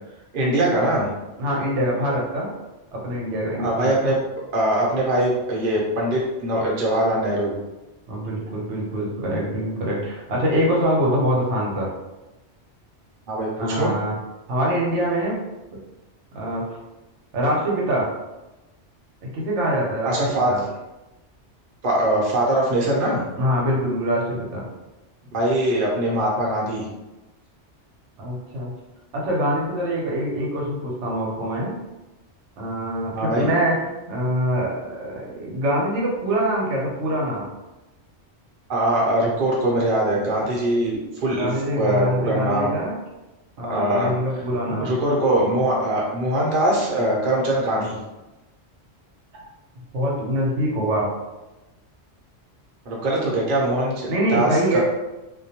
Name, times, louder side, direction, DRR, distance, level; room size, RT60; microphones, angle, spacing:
voice 1, 0.3-1.1 3.6-4.2 4.5-7.5 13.3-13.9 20.0-20.5 21.8-23.2 25.3-26.9 33.1-33.5 38.7-41.5 41.8-42.7 43.7-44.1 44.6-48.0 52.9-54.8, right 1 dB, 55° right, -4 dB, 0.8 m, -22 dB
voice 2, 1.4-2.5 2.9-4.1 8.1-11.9 13.6-14.1 14.5-15.4 16.3-16.6 17.3-18.1 19.3-20.1 20.5-20.6 23.4-24.7 28.2-28.7 29.1-31.8 32.6-37.5 41.4-43.0 43.6-44.9 49.3-49.4 49.9-51.1 54.1-54.8, equal, 80° right, -3 dB, 0.9 m, -24 dB
2.3 x 2.1 x 2.8 m, 1.0 s
omnidirectional pair, 1.2 m